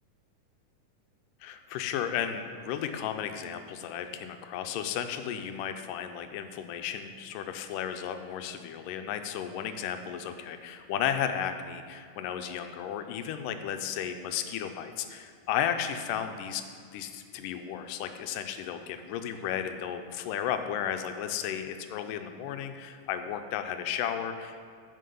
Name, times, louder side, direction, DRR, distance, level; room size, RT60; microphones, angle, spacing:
voice 1, 1.4-16.6 16.9-24.6, left 9 dB, 90° left, 8 dB, 2.2 m, -34 dB
7.4 x 6.0 x 6.9 m, 2.2 s
omnidirectional pair, 3.7 m